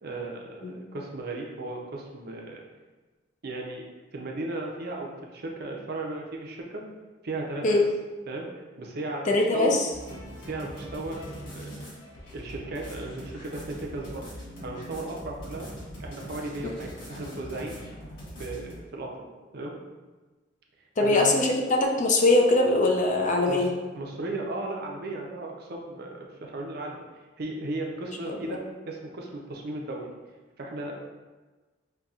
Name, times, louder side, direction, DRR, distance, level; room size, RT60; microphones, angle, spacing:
voice 1, 0.0-2.6 3.4-3.8 4.1-6.9 7.2-7.8 8.3-8.5 8.8-9.7 10.1-11.8 12.3-14.3 14.6-15.7 16.0-17.8 18.4-19.3 19.5-19.7 21.0-21.3 23.5-23.7 23.9-27.0 27.4-30.1 30.6-30.9, right 2 dB, 55° right, 0 dB, 0.5 m, -36 dB
voice 2, 9.3-9.9 16.6-16.7 21.0-23.7 28.3-28.6, left 2 dB, 40° left, 1 dB, 0.4 m, -22 dB
sound 1, 9.9-18.7, equal, 70° left, 1.2 m, -42 dB
5.4 x 2.2 x 2.4 m, 1.3 s
head